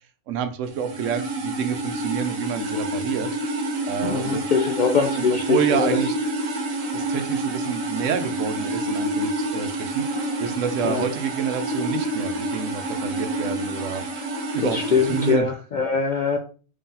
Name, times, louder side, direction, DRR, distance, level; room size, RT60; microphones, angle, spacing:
voice 1, 0.3-3.3 3.9-4.4 5.2-6.2 6.9-14.0 14.5-15.5, right 7 dB, 80° right, 9 dB, 0.9 m, -28 dB
sound 1, 0.7-15.4, right 1 dB, 50° right, 0.5 m, -28 dB
voice 2, 4.0-5.9 10.9-11.0 14.7-16.4, left 5 dB, 65° left, 3 dB, 0.4 m, -22 dB
3.3 x 2.7 x 3.7 m, 0.37 s
omnidirectional pair, 1.3 m